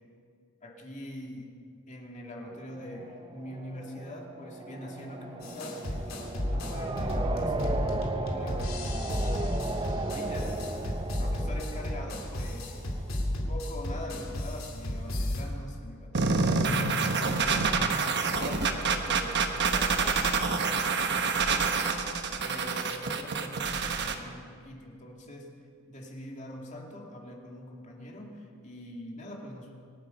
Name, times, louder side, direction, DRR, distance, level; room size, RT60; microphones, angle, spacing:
voice 1, 0.6-1.5 1.9-8.0 8.3-9.7 10.1-12.7 13.5-25.5 25.9-29.7, left 1 dB, 35° left, -1 dB, 2.4 m, -43 dB
sound 1, 2.5-13.3, right 2 dB, 25° right, 0.7 m, -36 dB
sound 2, 5.4-15.4, left 1 dB, 80° left, 2.8 m, -33 dB
sound 3, 16.1-24.1, right 4 dB, 55° right, 1.1 m, -27 dB
25.5 x 9.7 x 5.4 m, 2.2 s
head